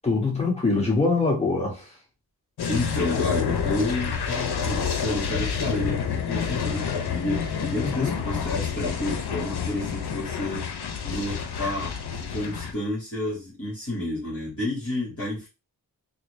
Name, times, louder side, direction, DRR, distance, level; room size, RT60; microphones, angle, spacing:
voice 1, 0.0-1.8 7.8-8.1, left 3 dB, 15° left, 1.9 m, -23 dB
sound 1, 2.6-12.7, left 6 dB, 70° left, 0.7 m, -29 dB
voice 2, 2.7-10.6 11.0-11.9 12.3-15.5, left 2 dB, 35° left, 1.8 m, -30 dB
3.8 x 2.3 x 3.2 m
cardioid pair, 65°, 40 cm